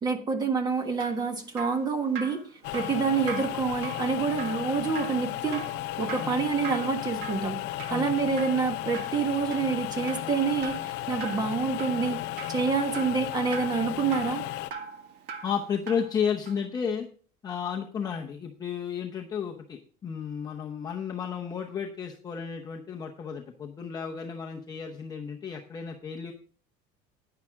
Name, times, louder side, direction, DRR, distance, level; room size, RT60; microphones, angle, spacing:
voice 1, 0.0-2.4 2.7-5.6 6.0-7.6 7.9-12.2 12.5-14.4, right 5 dB, 20° right, 6 dB, 1.5 m, -27 dB
Drip, 0.7-16.2 16.5-16.6, right 6 dB, 65° right, 1.7 m, -42 dB
sound 1, 2.6-14.7, left 15 dB, 70° left, 0.6 m, -34 dB
voice 2, 15.4-17.1 17.4-26.3, left 7 dB, 20° left, 1 dB, 0.8 m, -33 dB
10.5 x 9.9 x 3.6 m, 0.42 s
cardioid pair, 175°, 19 cm